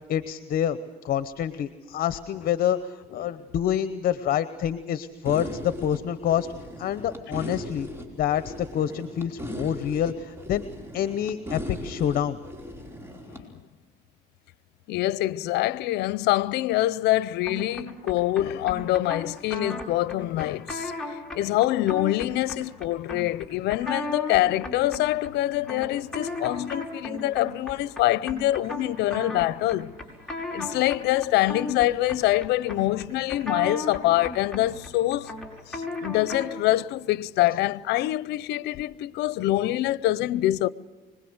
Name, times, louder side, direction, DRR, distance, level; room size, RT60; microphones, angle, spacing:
voice 1, 0.1-0.8 1.0-6.5 6.8-7.9 8.2-10.6 10.9-12.4 19.5-19.6, left 10 dB, 60° left, 0.9 m, -27 dB
sound 1, 5.2-13.4, equal, 15° right, 4.6 m, -38 dB
voice 2, 13.3-13.6 14.9-29.9 30.5-35.3 35.7-40.7, left 15 dB, 80° left, 0.7 m, -25 dB
sound 2, 17.4-36.6, left 1 dB, 5° left, 5.9 m, -36 dB
25.5 x 20.5 x 8.0 m
cardioid pair, 110°, 17 cm